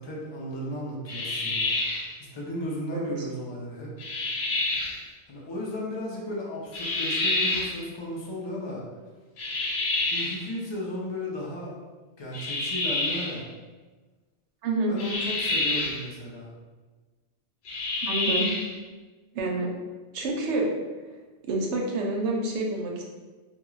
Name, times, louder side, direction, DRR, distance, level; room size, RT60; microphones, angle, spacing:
voice 1, 0.0-1.7 2.2-3.9 5.3-8.8 10.1-11.7 12.2-13.5 14.9-16.5 18.3-18.4, left 1 dB, 40° left, -3 dB, 0.4 m, -35 dB
sound 1, 1.1-2.1 4.0-5.0 6.7-7.8 9.4-10.4 12.3-13.4 15.0-16.0 17.6-18.7, left 2 dB, 70° left, 0.8 m, -28 dB
voice 2, 2.9-3.3 14.6-15.0 18.0-18.5 19.3-19.7 20.1-20.7 21.5-23.0, right 2 dB, 80° right, 0 dB, 0.9 m, -28 dB
2.3 x 2.2 x 3.0 m, 1.3 s
omnidirectional pair, 1.2 m